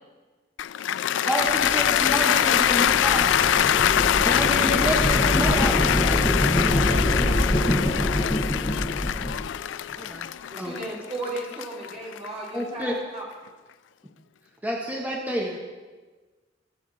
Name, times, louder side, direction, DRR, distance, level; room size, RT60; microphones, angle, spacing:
Cheering / Applause, 0.6-12.8, left 10 dB, 80° left, 0.3 m, -23 dB
voice 1, 0.9-3.3 4.2-6.3 6.6-7.0 10.0-10.3 10.6-10.8 12.5-13.0 14.6-15.6, equal, 10° right, -2 dB, 1.4 m, -29 dB
sound 1, 1.4-9.5, equal, 15° left, 1.3 m, -25 dB
voice 2, 6.6-8.3, right 2 dB, 80° right, 7 dB, 0.7 m, -36 dB
voice 3, 10.5-13.2, right 2 dB, 40° right, -5 dB, 4.4 m, -35 dB
22.0 x 8.3 x 4.2 m, 1.3 s
head